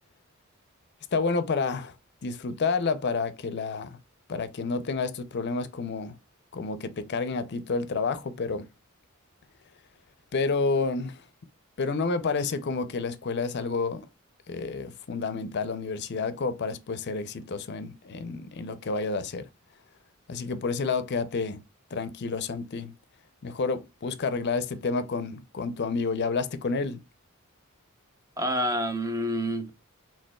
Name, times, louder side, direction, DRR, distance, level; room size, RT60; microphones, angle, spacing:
voice 1, 1.1-1.9 2.2-4.0 4.3-6.2 6.5-8.7 10.3-11.2 11.8-14.1 14.5-19.4 20.3-21.6 21.9-22.9 23.4-27.0, left 4 dB, 55° left, 0.5 m, -29 dB
voice 2, 28.4-29.8, equal, 15° right, 0.6 m, -28 dB
5.1 x 3.5 x 2.2 m
head